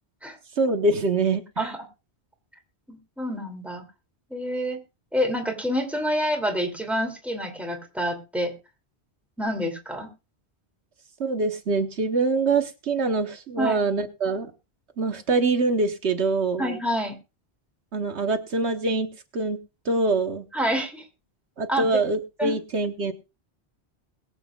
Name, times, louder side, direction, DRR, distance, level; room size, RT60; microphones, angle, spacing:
voice 1, 0.6-1.7 11.2-14.5 15.0-16.7 17.9-20.5 21.6-23.1, right 3 dB, 90° right, 6 dB, 1.5 m, -24 dB
voice 2, 2.9-3.8 4.3-4.8 5.1-8.5 9.4-10.1 13.6-13.8 16.6-17.2 20.5-21.1 21.7-21.9 22.4-22.6, equal, ahead, 3 dB, 2.7 m, -27 dB
21.5 x 8.1 x 2.4 m, 0.29 s
omnidirectional pair, 1.1 m